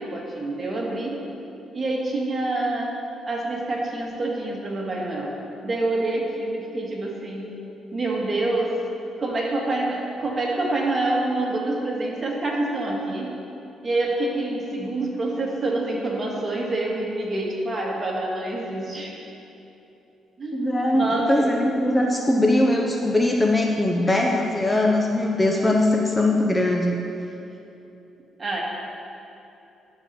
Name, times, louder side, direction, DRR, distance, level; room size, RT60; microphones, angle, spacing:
voice 1, 0.0-1.3 1.7-3.0 3.3-5.4 5.6-7.5 7.9-8.8 9.2-13.4 13.8-19.2 20.4-21.5 28.4-28.6, right 2 dB, 30° right, -3 dB, 2.0 m, -26 dB
voice 2, 20.5-27.0, left 1 dB, 15° left, 0 dB, 0.7 m, -21 dB
11.0 x 4.4 x 7.0 m, 2.9 s
cardioid pair, 90°, 0 cm